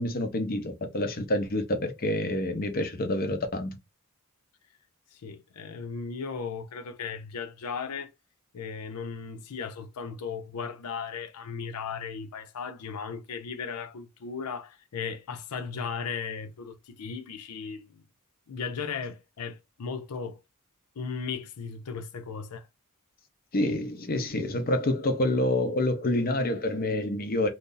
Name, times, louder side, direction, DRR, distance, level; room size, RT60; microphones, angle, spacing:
voice 1, 0.0-3.8 23.5-27.5, left 1 dB, 40° left, 0.7 m, -27 dB
voice 2, 5.1-8.1 8.5-18.0 18.5-20.4 21.0-22.7, left 5 dB, 85° left, 0.5 m, -36 dB
2.6 x 2.5 x 3.7 m
head